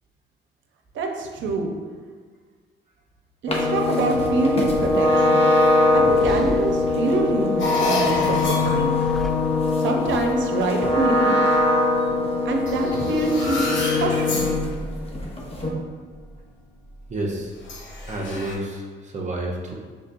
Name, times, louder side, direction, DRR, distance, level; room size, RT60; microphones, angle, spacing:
voice 1, 0.9-1.7 3.4-5.5 5.9-8.9 9.8-11.3 12.4-14.5, right 2 dB, 70° right, 2 dB, 0.7 m, -25 dB
sound 1, 3.5-14.8 15.1-15.7, left 2 dB, 30° left, 0.8 m, -21 dB
sound 2, 5.6-7.5 8.5-10.1, equal, ahead, 0.3 m, -35 dB
sound 3, 7.6-12.1 12.7-15.6 16.1-16.3 17.6-18.6, left 3 dB, 70° left, 1.0 m, -30 dB
voice 2, 17.1-17.5 18.1-19.7, right 1 dB, 35° right, -2 dB, 0.7 m, -29 dB
5.3 x 3.5 x 2.6 m, 1.5 s
cardioid pair, 90°, 20 cm